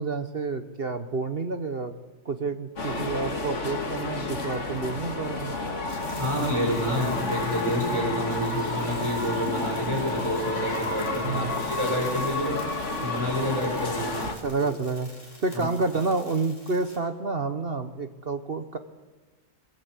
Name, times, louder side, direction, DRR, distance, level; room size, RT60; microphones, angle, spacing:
voice 1, 0.0-2.0 2.2-5.6 11.2-11.5 14.0-15.1 15.4-18.8, right 4 dB, 40° right, 9 dB, 1.0 m, -29 dB
sound 1, 2.8-14.3, left 3 dB, 45° left, 2.4 m, -31 dB
sound 2, 5.9-17.0, left 1 dB, 25° left, 6.1 m, -48 dB
voice 2, 6.2-12.6 13.0-14.2 14.6-14.7 15.5-15.6 15.9-16.0, equal, 15° right, 0 dB, 6.8 m, -28 dB
23.0 x 22.0 x 8.3 m, 1.3 s
omnidirectional pair, 1.8 m